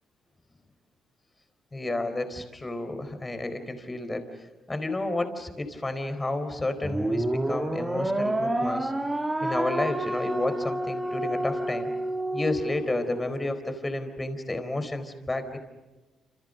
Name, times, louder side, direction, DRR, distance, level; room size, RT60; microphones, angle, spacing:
voice 1, 1.7-4.3 4.7-8.9 9.4-11.9 12.3-15.6, left 2 dB, 20° left, 8 dB, 4.3 m, -31 dB
sound 1, 6.8-13.3, right 1 dB, 15° right, 2.2 m, -29 dB
28.5 x 28.0 x 6.6 m, 1.1 s
cardioid pair, 90°, 0 cm